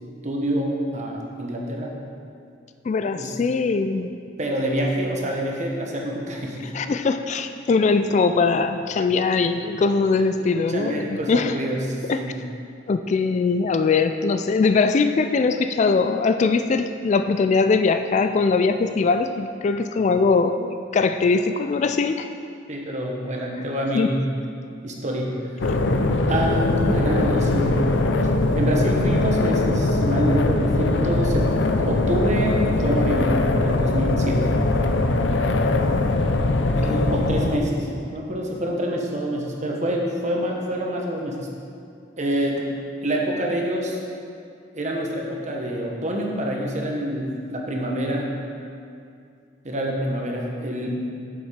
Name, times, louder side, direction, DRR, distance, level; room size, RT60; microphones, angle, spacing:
voice 1, 0.2-2.0 3.1-3.3 4.4-6.7 10.7-12.4 22.7-24.2 24.8-25.3 26.3-27.8 28.5-31.5 31.9-34.5 36.7-41.4 42.2-42.6 43.0-44.0 44.7-48.3 49.6-51.1, right 1 dB, 40° right, -1 dB, 1.2 m, -26 dB
voice 2, 2.9-4.1 6.6-11.6 12.0-12.3 12.9-22.3 23.9-24.1 36.8-37.1, left 4 dB, 40° left, 9 dB, 0.3 m, -21 dB
sound 1, 25.6-37.6, left 2 dB, 85° left, 0.6 m, -21 dB
8.2 x 7.2 x 5.1 m, 2.4 s
head